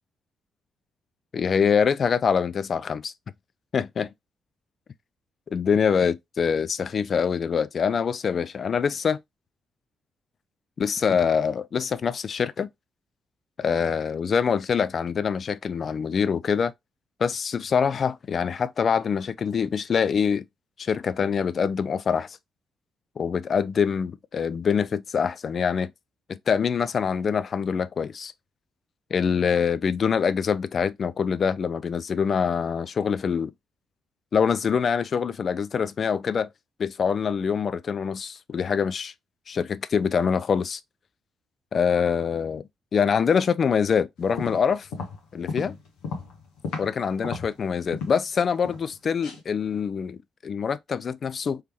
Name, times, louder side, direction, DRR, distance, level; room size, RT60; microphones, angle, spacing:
voice 1, 1.3-3.1 3.7-4.1 5.5-9.2 10.8-12.7 13.6-16.7 17.2-20.5 20.8-22.4 23.2-25.9 26.3-28.3 29.1-33.5 34.3-36.5 36.8-39.1 39.5-40.8 41.7-42.6 42.9-44.9 45.3-45.8 46.8-51.6, left 6 dB, 50° left, 0.3 m, -25 dB
sound 1, 44.2-47.0 47.2-48.3 48.6-49.0 49.2-49.4, left 4 dB, 70° left, 1.1 m, -34 dB
3.3 x 3.2 x 3.0 m
figure-of-eight pair, 40°, 0 cm